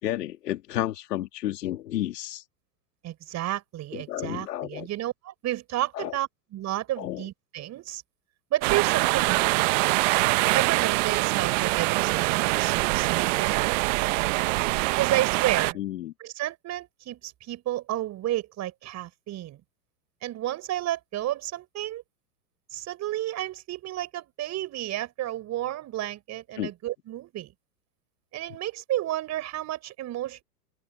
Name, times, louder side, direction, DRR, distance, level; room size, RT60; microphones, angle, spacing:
voice 1, 0.0-2.4 3.9-4.9 5.9-6.2 7.0-7.2 15.8-16.1 26.6-26.7, left 13 dB, 70° left, 2.3 m, -31 dB
voice 2, 3.0-8.0 8.5-9.7 10.5-13.8 15.0-15.8 16.2-19.6 20.2-22.0 22.7-27.5 28.3-30.4, right 14 dB, 35° right, 5.1 m, -31 dB
sound 1, 8.6-15.7, right 24 dB, 50° right, 1.0 m, -24 dB
open air
hypercardioid pair, 115°, 49 cm